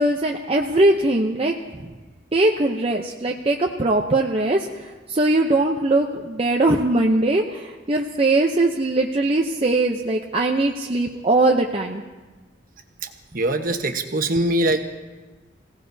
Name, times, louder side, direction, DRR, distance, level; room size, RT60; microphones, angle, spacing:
voice 1, 0.0-1.9 2.3-12.0 14.4-14.5, right 2 dB, 30° right, 1 dB, 0.7 m, -21 dB
voice 2, 13.3-14.8, right 1 dB, 50° right, 5 dB, 1.2 m, -22 dB
26.5 x 17.0 x 2.7 m, 1.2 s
head